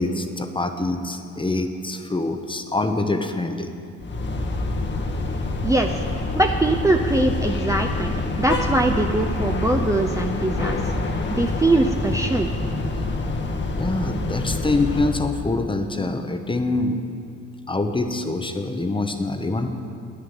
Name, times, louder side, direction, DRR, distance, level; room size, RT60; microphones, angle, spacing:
voice 1, 0.0-3.7 13.5-17.0 17.7-19.7, left 2 dB, 15° left, 7 dB, 0.8 m, -25 dB
sound 1, 4.0-15.2, left 2 dB, 35° left, 1.0 m, -26 dB
voice 2, 5.6-6.0 6.4-10.9 11.3-12.5, right 2 dB, 10° right, 2 dB, 0.5 m, -22 dB
9.4 x 6.7 x 8.7 m, 2.4 s
cardioid pair, 90°, 30 cm